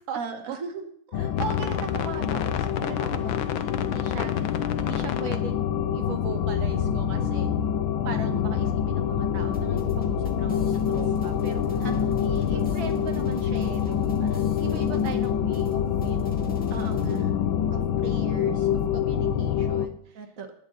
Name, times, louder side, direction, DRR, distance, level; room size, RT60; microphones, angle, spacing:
voice 1, 0.1-0.8 1.1-1.2 8.3-8.7 11.8-12.2 16.7-17.3 20.1-20.5, right 5 dB, 45° right, 6 dB, 1.7 m, -37 dB
sound 1, 1.1-19.9, left 8 dB, 75° left, 1.6 m, -26 dB
voice 2, 1.1-7.5 8.0-11.8 12.2-16.5 17.7-20.2, right 7 dB, 75° right, 7 dB, 1.6 m, -39 dB
sound 2, 9.5-17.2, left 1 dB, 5° left, 2.1 m, -42 dB
19.0 x 9.4 x 4.1 m, 0.68 s
omnidirectional pair, 2.2 m